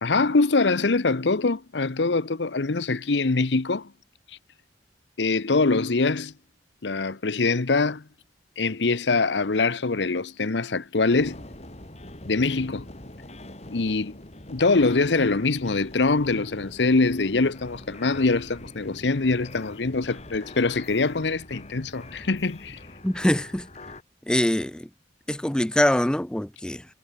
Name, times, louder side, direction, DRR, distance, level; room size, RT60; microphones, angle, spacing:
voice 1, 0.0-3.9 5.2-6.3 6.8-8.0 8.6-11.4 12.3-12.9 13.7-14.2 14.5-22.8, left 3 dB, 75° left, 0.9 m, -23 dB
sound 1, 11.1-24.0, left 1 dB, 40° left, 5.1 m, -44 dB
voice 2, 23.0-23.7 24.3-24.9 25.3-26.9, left 1 dB, 5° left, 0.4 m, -23 dB
head